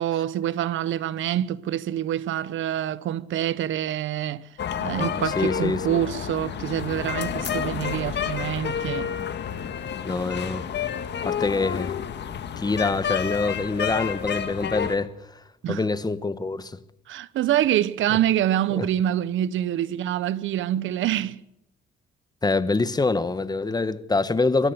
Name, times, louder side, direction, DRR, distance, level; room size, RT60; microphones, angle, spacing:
voice 1, 0.0-4.5 4.8-9.1 15.6-15.8 17.1-21.4, right 11 dB, 75° right, 1.0 m, -26 dB
sound 1, 4.6-15.0, left 8 dB, 60° left, 1.8 m, -30 dB
voice 2, 4.9-6.0 10.0-10.7 11.2-12.0 12.6-15.1 15.7-16.8 18.7-18.9 22.4-24.7, left 3 dB, 20° left, 1.2 m, -25 dB
24.0 x 13.0 x 9.2 m
cardioid pair, 90°, 20 cm